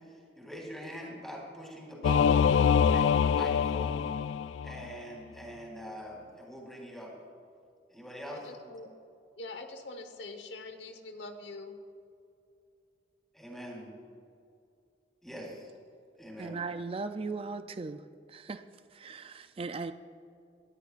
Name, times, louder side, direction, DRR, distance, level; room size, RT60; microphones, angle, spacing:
voice 1, 0.4-2.4 2.8-4.0 4.6-7.1 7.9-8.5 13.3-13.9 15.2-15.7 16.2-16.7, equal, ahead, -3 dB, 3.7 m, -43 dB
Singing / Musical instrument, 2.0-4.9, left 7 dB, 90° left, 0.3 m, -25 dB
voice 2, 8.3-8.9 9.4-11.7, left 2 dB, 70° left, 6 dB, 1.2 m, -44 dB
voice 3, 16.4-18.0 18.3-18.6 18.9-19.9, right 4 dB, 30° right, 9 dB, 0.4 m, -37 dB
22.5 x 13.5 x 2.5 m, 2.5 s
head